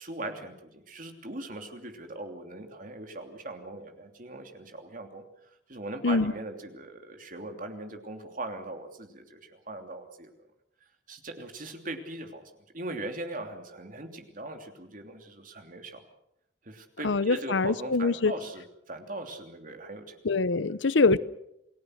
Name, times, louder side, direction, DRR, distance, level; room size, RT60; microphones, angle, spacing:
voice 1, 0.0-5.2 5.7-10.3 11.1-16.0 16.6-20.2, right 2 dB, 50° right, 3.0 m, -40 dB
voice 2, 17.0-18.3 20.2-21.2, left 3 dB, 85° left, 0.8 m, -24 dB
28.5 x 19.0 x 6.5 m
head